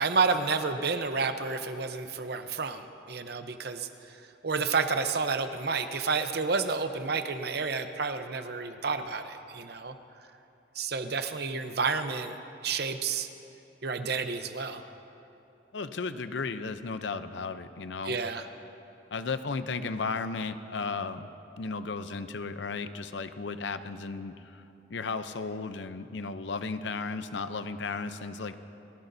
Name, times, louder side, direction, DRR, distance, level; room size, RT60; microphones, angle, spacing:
voice 1, 0.0-3.9 4.4-10.0 10.8-12.4 12.6-13.3 13.8-14.8 18.0-18.5, right 4 dB, 55° right, 8 dB, 0.8 m, -30 dB
voice 2, 15.7-18.2 19.1-21.3 21.6-24.6 24.9-28.5, left 4 dB, 70° left, 11 dB, 0.6 m, -34 dB
29.5 x 15.0 x 2.7 m, 2.8 s
head